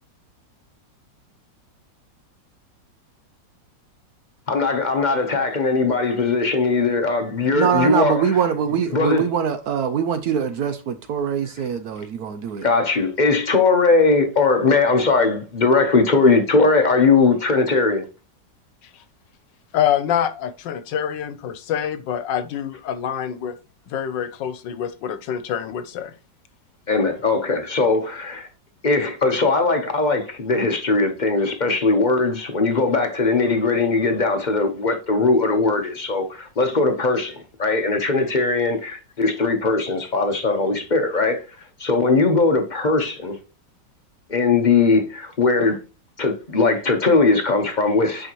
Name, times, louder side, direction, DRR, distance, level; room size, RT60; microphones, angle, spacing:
voice 1, 4.5-8.2 8.9-9.2 12.6-18.0 26.9-28.5 28.8-41.4 41.8-43.4 44.3-45.8 46.2-48.3, left 3 dB, 35° left, 0.9 m, -19 dB
voice 2, 7.5-12.7, right 7 dB, 70° right, 1.0 m, -23 dB
voice 3, 19.7-23.5 23.9-26.1, left 9 dB, 80° left, 1.5 m, -26 dB
8.6 x 5.0 x 3.0 m
omnidirectional pair, 2.0 m